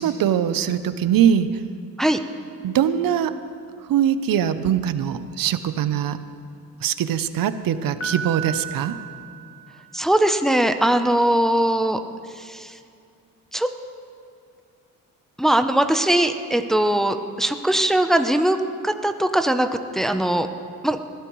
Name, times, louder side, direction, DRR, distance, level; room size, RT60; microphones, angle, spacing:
voice 1, 0.0-1.5 2.6-3.4 3.9-6.2 6.8-9.0, right 9 dB, 80° right, 12 dB, 0.7 m, -22 dB
Piano, 8.0-10.1, right 7 dB, 35° left, 1.2 m, -34 dB
voice 2, 9.9-12.0 12.3-12.8 13.5-13.7 15.4-18.6 18.8-20.5 20.8-21.0, right 1 dB, ahead, 7 dB, 0.6 m, -20 dB
20.5 x 15.0 x 3.1 m, 2.3 s
cardioid pair, 110°, 34 cm